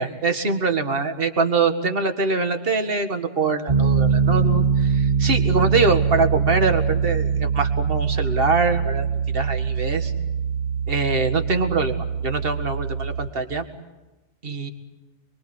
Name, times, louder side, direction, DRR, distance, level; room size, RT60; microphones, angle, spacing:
voice 1, 0.0-9.1 9.3-10.1 10.9-12.0 12.2-13.7 14.4-14.7, right 4 dB, 50° right, 7 dB, 2.1 m, -23 dB
Piano, 3.7-13.3, right 6 dB, 35° right, 1.6 m, -23 dB
25.5 x 24.0 x 8.0 m, 1.1 s
omnidirectional pair, 1.2 m